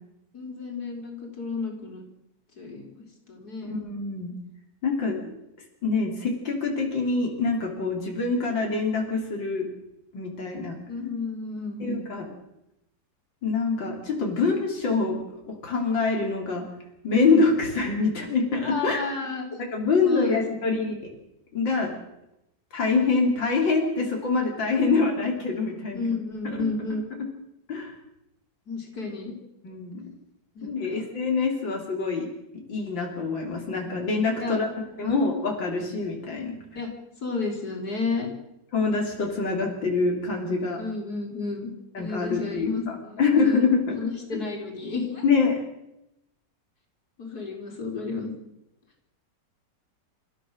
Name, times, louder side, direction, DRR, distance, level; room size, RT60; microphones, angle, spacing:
voice 1, 0.3-2.1 2.6-3.7 10.9-12.0 18.6-19.4 20.0-20.9 24.8-25.2 25.9-27.0 28.7-29.3 30.6-31.0 34.4-34.6 35.0-35.1 36.8-36.9 37.2-38.3 40.8-41.7 42.0-45.2 47.2-48.3, left 4 dB, 55° left, 1 dB, 4.6 m, -32 dB
voice 2, 3.6-4.3 4.8-5.2 5.8-9.7 10.1-10.8 11.8-12.3 13.4-16.7 17.0-19.0 19.7-21.1 21.5-21.9 22.7-26.0 26.4-26.7 27.2-27.3 27.7-27.9 29.6-30.0 30.6-32.3 32.5-34.7 35.0-36.6 38.7-40.8 41.9-44.0 45.2-45.6, left 4 dB, 85° left, 0 dB, 4.0 m, -25 dB
29.5 x 15.0 x 6.5 m, 0.88 s
omnidirectional pair, 2.0 m